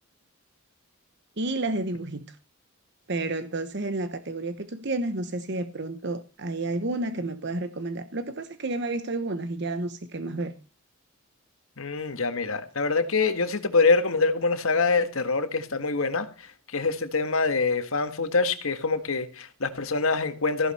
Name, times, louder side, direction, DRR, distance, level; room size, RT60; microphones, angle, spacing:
voice 1, 1.4-2.4 3.1-10.5, right 2 dB, 55° right, 1.0 m, -31 dB
voice 2, 11.8-20.7, left 4 dB, 85° left, 1.6 m, -25 dB
15.0 x 11.5 x 4.3 m
head